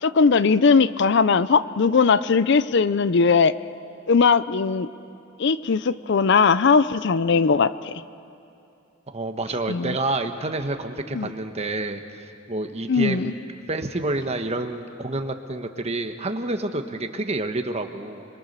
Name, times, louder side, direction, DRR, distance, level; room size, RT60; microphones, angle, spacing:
voice 1, 0.0-3.5 4.1-4.9 5.4-7.9 9.7-10.0 11.1-11.3 12.9-13.3, left 5 dB, 60° left, 15 dB, 0.5 m, -19 dB
voice 2, 9.1-13.3 13.7-18.3, right 2 dB, 30° right, 6 dB, 1.2 m, -28 dB
30.0 x 22.5 x 6.8 m, 2.6 s
head